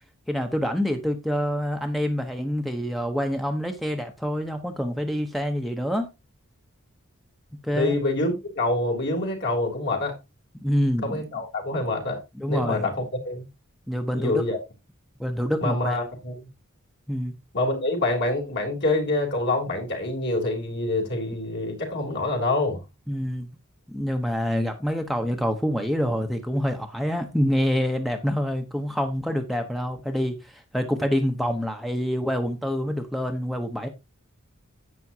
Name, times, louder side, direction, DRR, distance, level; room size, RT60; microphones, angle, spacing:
voice 1, 0.3-6.1 7.6-8.0 10.6-11.2 12.4-12.9 13.9-14.4 15.2-16.0 17.1-17.3 23.1-23.5 23.9-33.9, equal, ahead, 0.9 m, -26 dB
voice 2, 7.7-10.2 11.0-12.2 12.5-13.4 14.1-14.6 15.6-16.4 17.5-22.8, left 2 dB, 55° left, 3.4 m, -26 dB
11.0 x 8.5 x 2.8 m
head